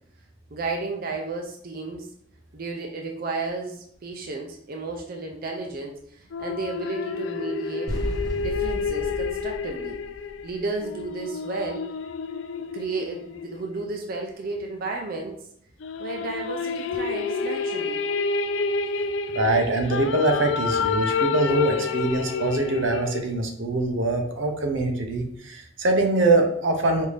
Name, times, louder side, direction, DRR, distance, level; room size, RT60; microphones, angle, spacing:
voice 1, 0.5-2.1 2.5-7.9 8.4-10.0 10.4-11.8 12.7-15.3 16.0-18.0, right 3 dB, 50° right, 2 dB, 0.5 m, -33 dB
sound 1, 6.3-14.0 15.8-23.2, left 4 dB, 85° left, 0.4 m, -29 dB
sound 2, 7.9-10.8, equal, 20° right, 0.9 m, -33 dB
voice 2, 19.3-27.1, right 2 dB, 85° right, 3 dB, 0.8 m, -23 dB
5.2 x 2.7 x 3.2 m, 0.66 s
head